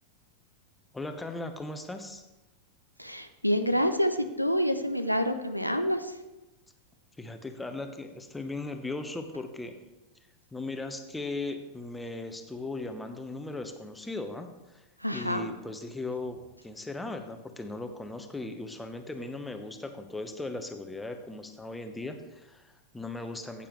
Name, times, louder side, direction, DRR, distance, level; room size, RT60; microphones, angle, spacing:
voice 1, 0.9-2.2 7.2-9.8 10.5-14.8 15.1-23.7, left 2 dB, 5° left, 7 dB, 1.0 m, -38 dB
voice 2, 3.0-6.1 15.0-15.5, equal, 90° right, 10 dB, 0.6 m, -27 dB
15.0 x 8.5 x 3.2 m, 1.0 s
figure-of-eight pair, 90°, 0 cm